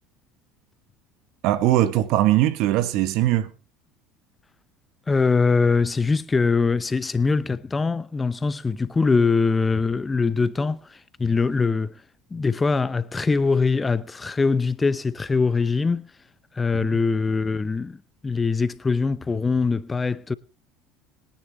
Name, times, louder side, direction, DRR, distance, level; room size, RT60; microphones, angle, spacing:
voice 1, 1.4-3.5 16.8-16.9, right 14 dB, 65° right, 1.4 m, -20 dB
voice 2, 5.1-12.0 12.3-16.1 16.5-18.0 18.2-20.3, left 4 dB, 20° left, 0.8 m, -22 dB
22.0 x 10.0 x 3.1 m
hypercardioid pair, 80°, 0 cm